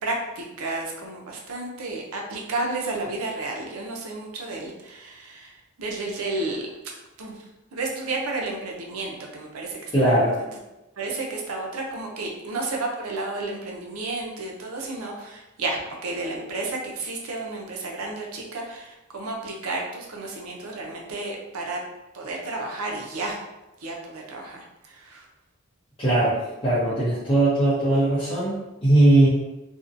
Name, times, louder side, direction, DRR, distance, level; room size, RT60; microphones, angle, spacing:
voice 1, 0.0-6.7 7.2-7.4 7.7-10.5 11.0-21.8 22.1-23.4 23.8-25.3, right 2 dB, 75° right, -1 dB, 0.6 m, -32 dB
voice 2, 9.9-10.3 26.0-26.4 26.6-29.3, right 1 dB, 25° left, -12 dB, 0.7 m, -19 dB
2.6 x 2.1 x 2.5 m, 1.0 s
head